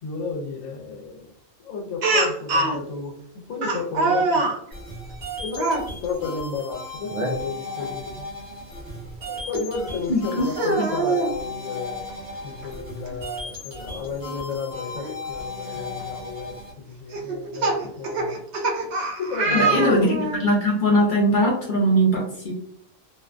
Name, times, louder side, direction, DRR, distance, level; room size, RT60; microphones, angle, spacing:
voice 1, 0.0-1.3 1.6-4.5 5.4-8.2 9.2-12.0 12.4-18.4 19.2-20.0, left 4 dB, 85° left, 3 dB, 1.0 m, -32 dB
Speech, 2.0-2.8 3.6-4.6 5.5-5.8 7.1-7.3 7.8-7.9 9.5-9.6 10.4-11.3 12.6-12.7 13.1-13.2 15.0-15.1 15.8-16.0 17.1-20.4, right 3 dB, 75° right, 0.4 m, -24 dB
sound 1, 4.7-16.7, left 2 dB, 45° right, 0.9 m, -36 dB
voice 2, 10.1-10.5 19.5-22.5, equal, 60° left, -2 dB, 0.5 m, -20 dB
2.5 x 2.1 x 2.3 m, 0.64 s
omnidirectional pair, 1.3 m